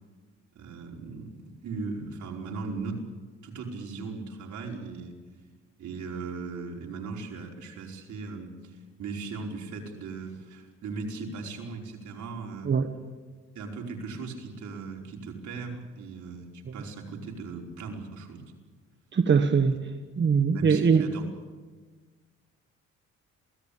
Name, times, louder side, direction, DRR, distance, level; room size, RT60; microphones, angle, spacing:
voice 1, 0.5-3.0 3.4-5.1 5.8-12.7 13.5-18.4 20.5-21.2, right 4 dB, 70° right, 1 dB, 5.0 m, -38 dB
voice 2, 19.1-19.7 20.2-21.1, right 5 dB, 40° right, 7 dB, 1.5 m, -22 dB
27.5 x 18.0 x 8.7 m, 1.4 s
cardioid pair, 90°, 30 cm